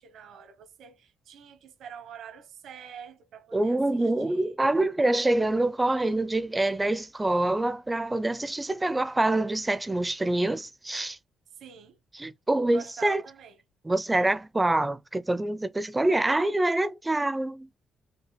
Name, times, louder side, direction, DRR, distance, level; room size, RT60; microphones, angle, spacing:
voice 1, 0.0-4.6 11.5-12.0 12.7-13.6, right 8 dB, 75° right, 1.1 m, -46 dB
voice 2, 3.5-11.2 12.2-13.2 13.8-17.7, right 2 dB, 15° right, 0.5 m, -26 dB
5.5 x 2.1 x 3.2 m
cardioid pair, 90°, 0 cm